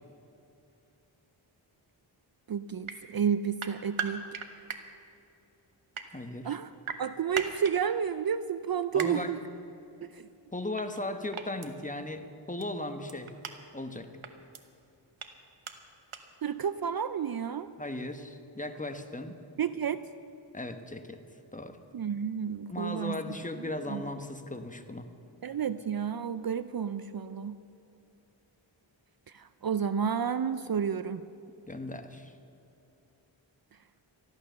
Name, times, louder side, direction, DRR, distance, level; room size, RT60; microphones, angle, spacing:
voice 1, 2.5-4.2 6.4-6.7 7.0-9.4 10.0-10.3 16.4-17.7 19.6-20.0 21.9-23.2 23.6-24.0 25.4-27.6 29.3-31.2, right 7 dB, 50° right, 13 dB, 0.5 m, -31 dB
sound 1, 2.8-3.0 3.6-4.8 5.7-6.1 6.8-7.7 9.0-9.1 10.8-11.0 11.3-11.7 12.6-12.7 13.1-13.5 14.2-14.6 15.2-15.3 15.6-15.7 16.1-16.2, right 7 dB, 90° right, 1.0 m, -37 dB
voice 2, 6.1-6.5 8.9-9.3 10.5-13.3 13.7-14.1 17.8-19.4 20.5-21.2 21.5-21.8 22.7-25.1 31.7-32.3, left 1 dB, 15° left, 7 dB, 1.1 m, -37 dB
14.5 x 11.5 x 6.7 m, 2.8 s
wide cardioid pair, 55°, 48 cm